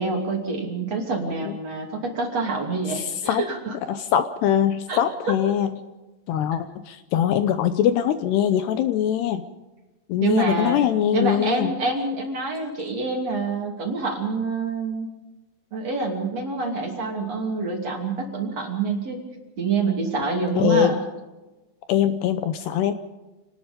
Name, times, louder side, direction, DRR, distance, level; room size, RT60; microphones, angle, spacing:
voice 1, 0.0-3.7 4.9-5.0 10.2-10.8 11.1-15.1 15.7-19.2 19.6-21.0, right 3 dB, 40° right, 1 dB, 3.4 m, -26 dB
voice 2, 2.9-3.4 3.9-5.8 6.3-9.5 10.1-11.7 20.6-21.0 21.9-22.9, left 10 dB, 75° left, 10 dB, 2.7 m, -22 dB
27.5 x 19.5 x 5.2 m, 1.1 s
omnidirectional pair, 5.2 m